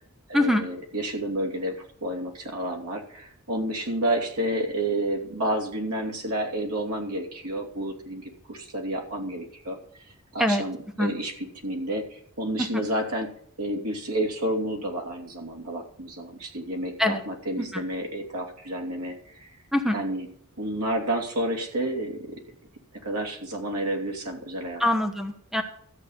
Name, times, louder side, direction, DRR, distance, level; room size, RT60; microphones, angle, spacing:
voice 1, 0.3-13.3 13.6-19.6 19.9-20.3 20.6-22.4 23.0-24.8, right 1 dB, 85° right, 2 dB, 3.0 m, -30 dB
voice 2, 24.8-25.6, left 1 dB, ahead, 6 dB, 1.1 m, -23 dB
13.5 x 8.3 x 5.7 m, 0.66 s
head